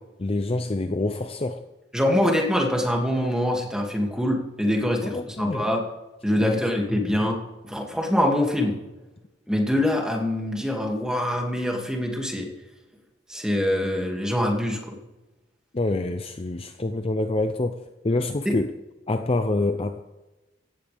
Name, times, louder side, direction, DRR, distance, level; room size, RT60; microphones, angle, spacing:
voice 1, 0.2-1.6 5.1-5.7 6.4-6.6 6.9-7.2 15.7-18.7 19.1-20.0, left 2 dB, 30° left, 0.6 m, -26 dB
voice 2, 1.9-5.8 6.2-8.7 9.5-12.5 13.3-15.0 18.5-18.6, left 1 dB, 5° right, 2.4 m, -24 dB
16.5 x 15.5 x 3.5 m
head